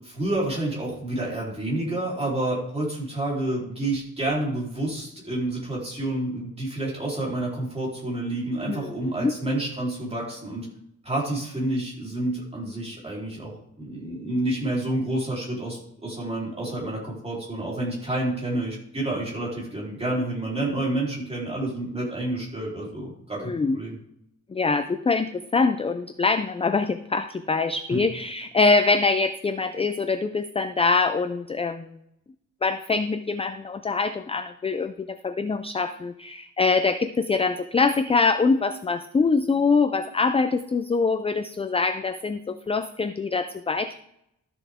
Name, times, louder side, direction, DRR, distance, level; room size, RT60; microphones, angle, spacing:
voice 1, 0.0-10.7 11.0-24.0 27.9-28.0, right 1 dB, 20° right, -4 dB, 3.6 m, -29 dB
voice 2, 23.4-23.8 24.5-32.0 32.6-44.0, left 4 dB, 20° left, 10 dB, 0.3 m, -24 dB
13.0 x 6.8 x 3.6 m, 0.77 s
wide cardioid pair, 165°, 31 cm